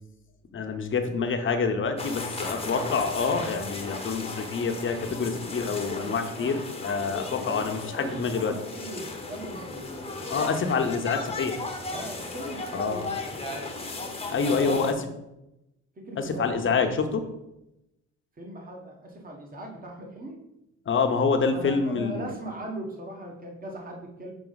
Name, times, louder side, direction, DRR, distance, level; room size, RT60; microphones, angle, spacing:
voice 1, 0.5-8.5 10.3-11.6 12.7-13.1 14.3-14.9 16.2-17.2 20.9-22.3, left 5 dB, 40° left, 5 dB, 0.9 m, -27 dB
sound 1, 2.0-14.9, left 3 dB, 20° left, 1.0 m, -36 dB
voice 2, 7.4-11.0 11.9-13.7 14.3-15.0 16.0-16.8 17.2-17.3 18.4-20.4 21.5-24.3, right 1 dB, 30° right, 1 dB, 1.4 m, -40 dB
5.9 x 4.2 x 4.1 m, 0.88 s
cardioid pair, 90°, 30 cm